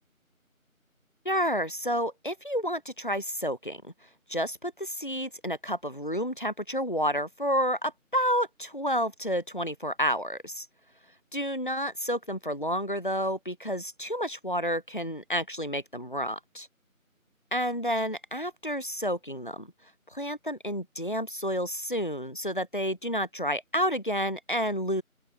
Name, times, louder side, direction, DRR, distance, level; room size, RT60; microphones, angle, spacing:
voice 1, 1.2-3.9 4.3-10.7 11.3-16.7 17.5-19.7 20.1-25.0, equal, 35° left, 2.8 m, -30 dB
open air
figure-of-eight pair, 180°, 42 cm